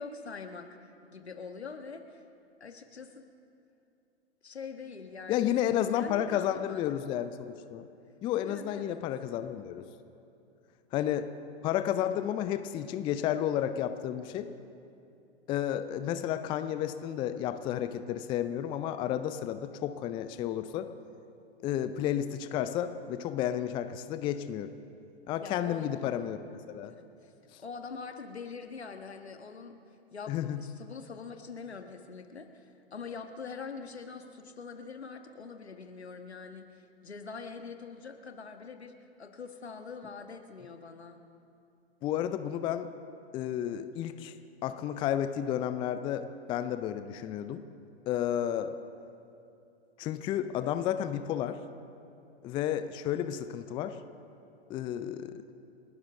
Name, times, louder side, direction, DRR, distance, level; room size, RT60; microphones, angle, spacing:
voice 1, 0.0-2.2 2.6-3.3 4.4-5.6 5.9-6.8 8.5-9.0 25.4-26.2 26.9-27.3 27.6-29.8 30.1-41.2, left 5 dB, 80° left, 6 dB, 1.5 m, -44 dB
voice 2, 5.3-7.8 8.2-9.8 10.9-11.3 11.6-14.5 15.5-20.9 21.6-24.7 25.3-26.4 26.7-26.9 30.3-30.6 42.0-42.9 43.3-44.3 44.6-47.6 48.1-48.8 50.0-51.6 52.4-54.0 54.7-55.4, left 10 dB, 15° left, 11 dB, 0.4 m, -32 dB
29.5 x 12.5 x 3.6 m, 2.6 s
figure-of-eight pair, 110°, 32 cm